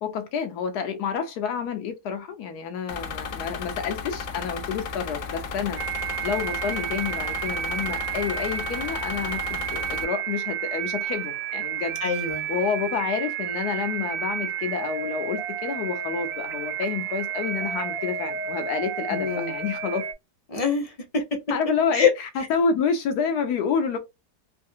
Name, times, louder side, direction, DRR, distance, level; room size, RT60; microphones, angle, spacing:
voice 1, 0.0-5.8 6.2-12.0 12.5-20.0 21.5-24.0, left 6 dB, 80° left, 1.3 m, -29 dB
sound 1, 2.9-10.0, left 5 dB, 65° left, 1.0 m, -34 dB
sound 2, 5.8-20.1, right 8 dB, 70° right, 0.9 m, -31 dB
voice 2, 12.0-12.5 19.1-19.5 20.5-21.4 21.9-22.1, left 6 dB, 40° left, 0.5 m, -24 dB
3.3 x 2.8 x 2.6 m
omnidirectional pair, 1.7 m